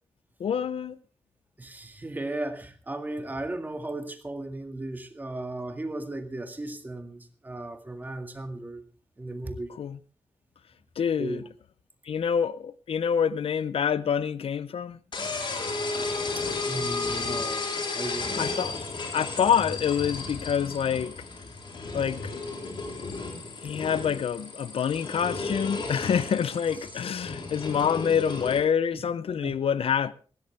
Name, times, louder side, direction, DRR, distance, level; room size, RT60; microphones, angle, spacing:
voice 1, 0.4-1.0 9.8-10.0 11.0-11.4 12.1-15.0 18.4-18.8 19.1-21.1 21.9-22.3 23.6-30.1, left 7 dB, 70° left, 0.7 m, -26 dB
voice 2, 1.6-8.8 9.2-9.7 11.2-11.4 16.4-18.5 29.4-29.5, right 2 dB, 15° right, 1.9 m, -36 dB
sound 1, 15.1-28.6, left 3 dB, 50° left, 3.7 m, -33 dB
19.5 x 16.5 x 3.4 m
wide cardioid pair, 170°, 10 cm